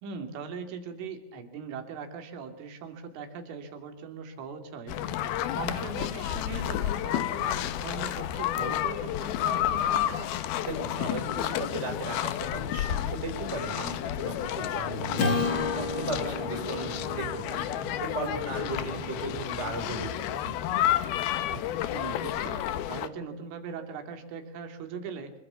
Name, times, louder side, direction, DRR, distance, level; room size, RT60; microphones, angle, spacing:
voice 1, 0.0-10.3 18.6-18.9 21.9-25.3, right 5 dB, 90° right, 6 dB, 5.3 m, -40 dB
sound 1, 4.9-23.1, left 11 dB, 70° left, 2.5 m, -31 dB
voice 2, 10.7-20.4, right 2 dB, 15° right, 4 dB, 5.3 m, -36 dB
Acoustic guitar / Strum, 15.2-19.6, left 3 dB, 35° left, 2.3 m, -33 dB
sound 2, 15.9-21.9, right 5 dB, 70° right, 4.6 m, -48 dB
25.5 x 22.5 x 7.0 m, 0.73 s
omnidirectional pair, 5.5 m